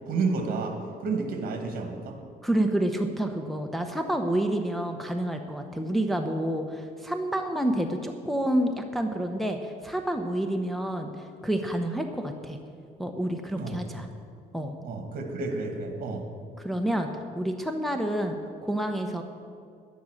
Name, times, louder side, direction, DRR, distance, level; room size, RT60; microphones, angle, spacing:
voice 1, 0.1-0.7 1.0-2.1 13.6-13.8 14.8-16.2, right 4 dB, 60° right, 4 dB, 2.1 m, -30 dB
voice 2, 2.4-12.6 13.0-14.1 14.5-14.8 16.6-17.1 17.3-18.4 18.6-19.2, right 1 dB, ahead, 3 dB, 0.9 m, -28 dB
11.0 x 10.0 x 6.5 m, 2.3 s
cardioid pair, 110°, 17 cm